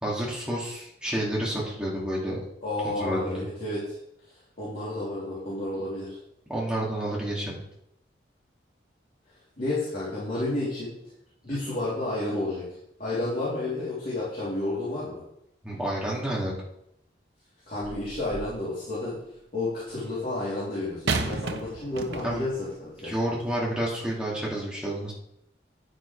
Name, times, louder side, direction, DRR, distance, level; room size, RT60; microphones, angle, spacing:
voice 1, 0.0-2.4 2.8-3.4 6.5-7.6 11.5-11.6 15.6-16.5 22.2-22.4 23.0-25.1, right 1 dB, 5° right, -5 dB, 2.3 m, -30 dB
voice 2, 2.6-3.9 4.6-6.2 9.6-10.9 11.4-12.7 13.0-15.2 17.7-19.2 19.5-23.1, left 2 dB, 45° left, -10 dB, 3.2 m, -31 dB
sound 1, 17.8-18.6 21.1-22.6 23.4-23.5, right 3 dB, 70° right, 0.9 m, -32 dB
9.9 x 9.6 x 3.3 m, 0.78 s
head